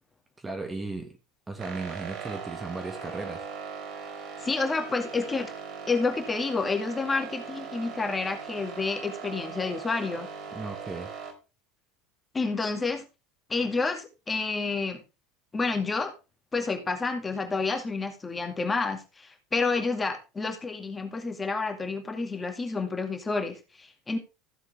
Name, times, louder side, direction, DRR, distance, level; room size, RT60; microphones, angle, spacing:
voice 1, 0.4-1.2 1.5-3.5 10.5-11.1, right 3 dB, 15° right, 1.8 m, -36 dB
sound 1, 1.6-11.3, right 6 dB, 45° right, 4.9 m, -40 dB
voice 2, 4.4-5.5 5.9-10.3 12.3-13.0 13.5-15.0 15.5-16.1 16.5-24.2, left 4 dB, 15° left, 2.2 m, -29 dB
15.0 x 7.6 x 3.5 m
figure-of-eight pair, 75°, 0 cm